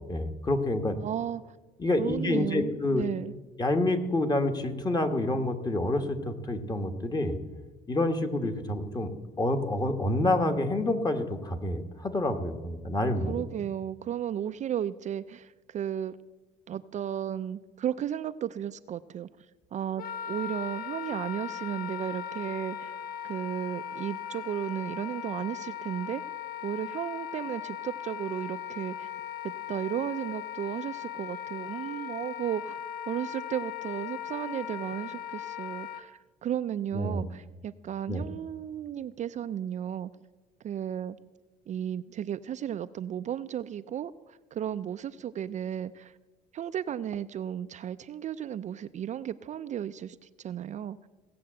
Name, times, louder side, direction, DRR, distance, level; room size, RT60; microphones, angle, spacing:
voice 1, 0.1-1.0 1.8-3.0 3.6-7.4 7.9-9.1 9.4-13.4 36.9-37.3 38.1-38.2, left 2 dB, 25° left, 6 dB, 1.5 m, -28 dB
voice 2, 1.0-1.5 2.0-3.3 13.0-16.2 16.7-19.3 19.7-22.9 23.2-26.2 26.6-29.1 29.7-32.8 33.1-40.1 40.6-41.2 41.7-46.1 46.5-51.0, right 10 dB, 45° right, 12 dB, 0.4 m, -34 dB
Wind instrument woodwind instrument, 20.0-36.0, left 9 dB, 60° left, 1.0 m, -38 dB
17.0 x 7.7 x 7.6 m, 1.2 s
cardioid pair, 110°, 17 cm